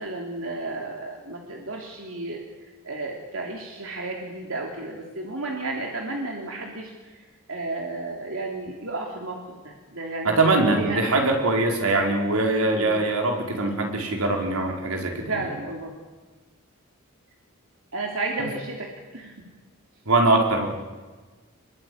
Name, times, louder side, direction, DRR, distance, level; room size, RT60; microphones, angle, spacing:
voice 1, 0.0-11.0 12.7-13.1 15.3-15.9 17.9-19.5, right 2 dB, 65° right, 0 dB, 3.2 m, -33 dB
voice 2, 10.2-15.3 20.1-20.7, right 2 dB, 85° right, 2 dB, 4.9 m, -22 dB
27.0 x 22.5 x 9.7 m, 1.3 s
head